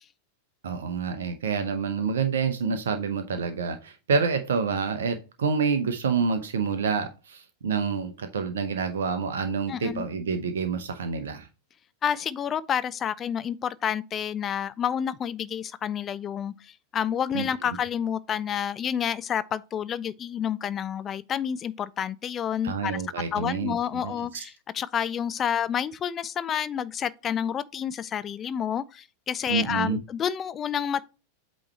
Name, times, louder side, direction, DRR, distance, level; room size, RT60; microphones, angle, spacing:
voice 1, 0.6-11.5 17.3-17.5 22.6-23.8 24.0-24.4 29.5-30.0, right 5 dB, 65° right, 0.8 m, -28 dB
voice 2, 9.7-10.1 12.0-23.0 23.3-31.0, left 8 dB, 25° left, 0.5 m, -29 dB
8.6 x 3.1 x 4.3 m
figure-of-eight pair, 90°, 0 cm